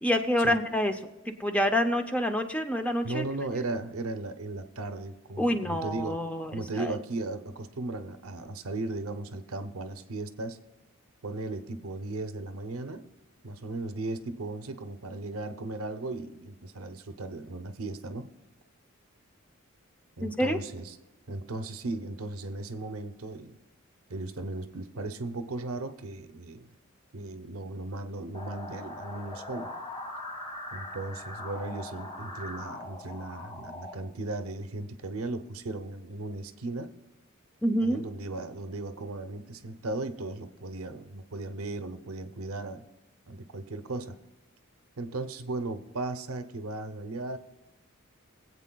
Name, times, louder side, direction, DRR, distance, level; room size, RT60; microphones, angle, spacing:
voice 1, 0.0-0.9 1.3-3.2 5.4-6.9 20.2-20.6 37.6-38.0, equal, 5° left, 6 dB, 0.5 m, -27 dB
voice 2, 3.0-6.2 6.5-10.6 11.2-13.1 13.4-18.3 20.2-20.8 21.3-23.6 24.1-26.7 27.1-29.7 30.7-36.9 37.8-42.8 43.3-44.2 45.0-47.4, right 2 dB, 85° right, 9 dB, 0.7 m, -36 dB
sound 1, 28.3-33.9, left 2 dB, 25° left, 1.6 m, -41 dB
22.0 x 8.3 x 2.3 m, 1.1 s
head